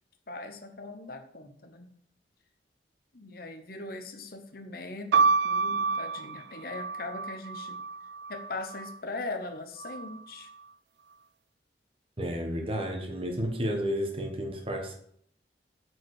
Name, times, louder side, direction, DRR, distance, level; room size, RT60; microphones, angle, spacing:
voice 1, 0.3-1.9 3.1-7.8 8.3-10.5, left 2 dB, 55° left, 7 dB, 0.9 m, -40 dB
sound 1, 5.1-9.0 9.8-10.5, right 4 dB, 65° right, 0.4 m, -29 dB
voice 2, 12.2-14.9, equal, 30° right, 3 dB, 1.3 m, -31 dB
8.6 x 4.8 x 4.8 m, 0.64 s
head